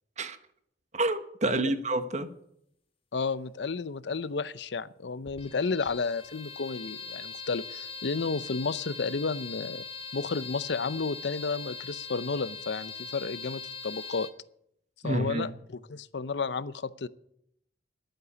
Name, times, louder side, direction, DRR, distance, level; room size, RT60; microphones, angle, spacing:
voice 1, 0.9-2.3 15.0-15.5, right 2 dB, 40° right, 10 dB, 1.1 m, -28 dB
voice 2, 3.1-9.8 10.1-14.3 15.0-17.1, left 4 dB, 75° left, 17 dB, 0.6 m, -32 dB
sound 1, 5.2-14.3, left 6 dB, 30° left, 1.3 m, -41 dB
11.5 x 9.2 x 9.9 m, 0.75 s
head